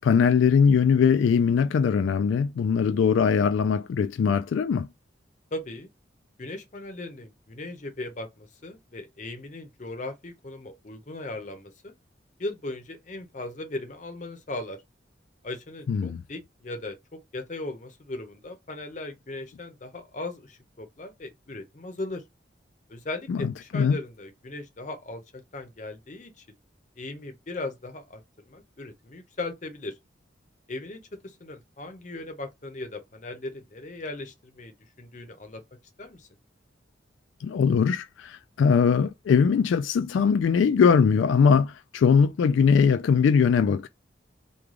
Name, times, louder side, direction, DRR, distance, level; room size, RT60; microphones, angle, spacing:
voice 1, 0.0-4.9 15.9-16.2 23.3-23.5 23.7-24.0 37.4-43.9, left 6 dB, 85° left, 0.3 m, -21 dB
voice 2, 5.5-5.9 6.4-11.9 12.4-14.8 15.4-17.0 17.3-22.2 22.9-26.4 27.0-30.0 30.7-35.6 36.0-36.3, left 2 dB, 40° left, 0.6 m, -38 dB
3.2 x 2.3 x 3.6 m
head